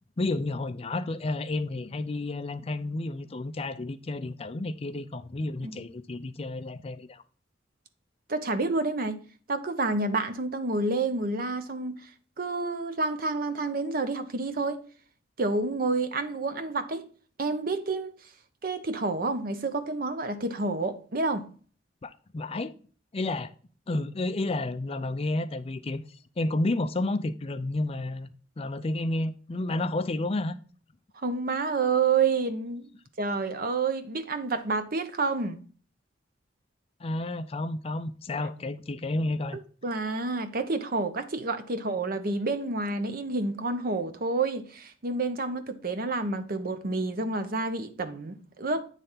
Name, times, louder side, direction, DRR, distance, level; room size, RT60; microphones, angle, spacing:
voice 1, 0.2-7.2 22.0-22.7 23.1-23.5 23.9-28.3 28.6-30.6 37.0-39.6, left 2 dB, 30° left, 0.5 m, -31 dB
voice 2, 8.3-12.1 12.4-14.8 15.4-17.1 17.4-18.1 18.6-21.5 31.1-32.9 33.2-35.6 39.8-48.8, right 3 dB, 50° right, 0.8 m, -29 dB
9.0 x 3.3 x 5.6 m
head